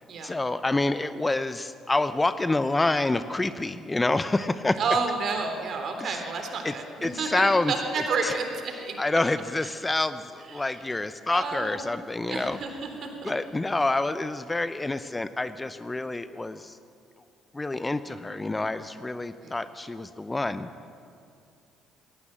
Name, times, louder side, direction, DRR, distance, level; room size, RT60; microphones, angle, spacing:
voice 1, 0.2-4.8 6.0-6.2 6.6-6.8 7.0-7.7 8.2-8.3 9.0-12.6 13.2-16.8 17.5-20.7, left 2 dB, 20° left, 12 dB, 0.9 m, -27 dB
voice 2, 4.8-9.0 10.5-10.7 11.3-11.9 12.2-13.3 19.4-19.6, right 4 dB, 50° right, 4 dB, 3.6 m, -30 dB
19.5 x 18.0 x 7.6 m, 2.4 s
hypercardioid pair, 50°, 0 cm